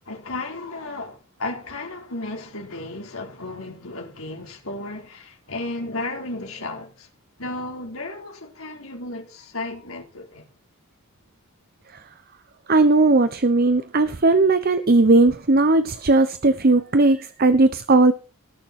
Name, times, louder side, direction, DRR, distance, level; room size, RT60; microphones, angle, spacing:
voice 1, 0.1-7.1 7.4-10.5, left 2 dB, 70° left, 4.2 m, -34 dB
voice 2, 12.7-18.1, right 2 dB, 45° right, 0.9 m, -17 dB
19.0 x 6.9 x 5.9 m
head